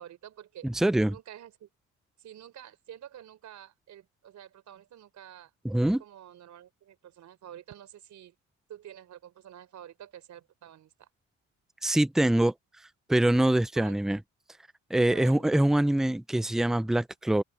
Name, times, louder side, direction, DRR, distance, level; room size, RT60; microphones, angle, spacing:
voice 1, 0.0-0.7 1.0-1.7 2.2-5.5 6.0-8.3 8.7-11.1 13.8-14.0 15.1-15.6, right 10 dB, 70° right, 4.3 m, -48 dB
voice 2, 0.6-1.2 5.6-6.0 11.8-12.5 13.1-14.2 14.9-17.4, right 1 dB, ahead, 0.5 m, -24 dB
cardioid pair, 90°, 30 cm